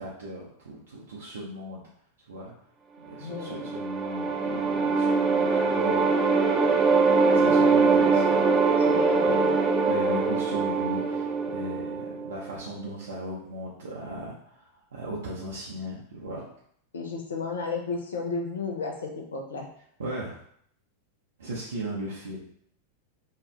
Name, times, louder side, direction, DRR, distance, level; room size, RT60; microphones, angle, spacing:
voice 1, 0.0-1.8 2.3-2.5 3.0-6.1 7.3-8.4 9.9-16.4 20.0-20.4 21.4-22.4, right 1 dB, 65° right, -5 dB, 0.6 m, -37 dB
voice 2, 3.2-3.7 7.4-7.6 8.9-9.5 16.9-19.7, left 4 dB, 65° left, 1 dB, 0.5 m, -33 dB
sound 1, 3.3-12.5, right 4 dB, 25° right, 0.4 m, -23 dB
2.7 x 2.3 x 3.2 m, 0.65 s
figure-of-eight pair, 90°, 0 cm